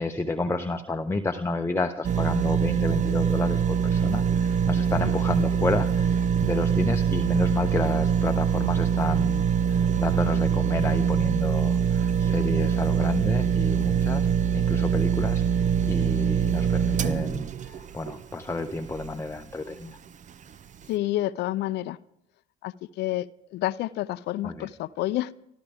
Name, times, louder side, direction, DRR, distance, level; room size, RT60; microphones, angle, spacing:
voice 1, 0.0-14.3 14.5-20.0 24.4-24.7, left 2 dB, 15° left, 5 dB, 0.9 m, -31 dB
sound 1, 2.0-19.2 19.7-19.8, right 7 dB, 40° right, 0.7 m, -24 dB
voice 2, 20.9-22.0 22.6-23.3 23.5-25.3, left 15 dB, 60° left, 17 dB, 0.6 m, -29 dB
25.0 x 13.5 x 3.5 m, 0.78 s
hypercardioid pair, 60°, 20 cm